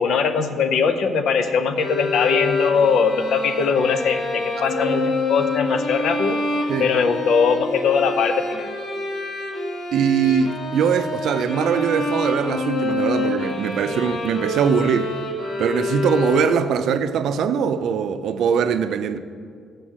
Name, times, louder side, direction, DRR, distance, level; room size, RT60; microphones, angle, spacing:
voice 1, 0.0-6.4 6.8-8.7, left 5 dB, 75° left, 0.6 m, -21 dB
sound 1, 1.8-16.9, left 2 dB, 60° left, 1.2 m, -27 dB
voice 2, 9.9-15.1 15.6-19.2, right 7 dB, 75° right, 0.4 m, -21 dB
6.7 x 6.3 x 7.3 m
cardioid pair, 90°, 0 cm